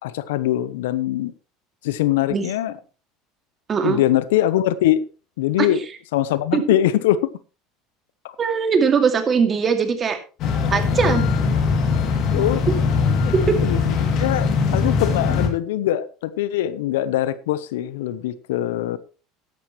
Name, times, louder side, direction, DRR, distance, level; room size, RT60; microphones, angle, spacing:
voice 1, 0.0-1.3 1.8-2.8 3.8-5.1 5.4-5.8 6.1-7.3 8.2-8.4 11.2-11.3 12.3-12.6 13.6-19.0, left 13 dB, 85° left, 0.8 m, -22 dB
voice 2, 3.7-4.0 5.6-5.7 6.5-6.6 8.4-10.2 10.7-11.2 13.3-13.6, right 5 dB, 35° right, 2.3 m, -20 dB
sound 1, 10.4-15.5, left 5 dB, 55° left, 2.7 m, -21 dB
14.5 x 11.0 x 3.1 m
supercardioid pair, 100°, 0 cm